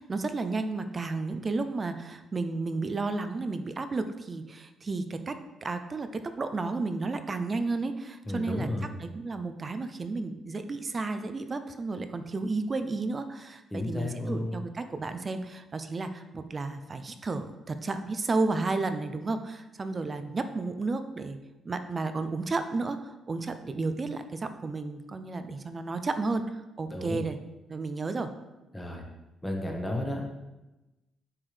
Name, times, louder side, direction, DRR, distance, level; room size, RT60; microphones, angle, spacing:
voice 1, 0.0-6.1 6.4-8.7 9.0-21.4 21.6-27.4 27.7-28.3, right 3 dB, 35° right, 9 dB, 0.5 m, -32 dB
voice 2, 8.3-8.9 13.7-14.5 26.9-27.2 28.7-29.0 29.4-30.2, left 1 dB, 10° left, 0 dB, 1.2 m, -32 dB
7.2 x 4.5 x 3.4 m, 1.0 s
cardioid pair, 90°, 0 cm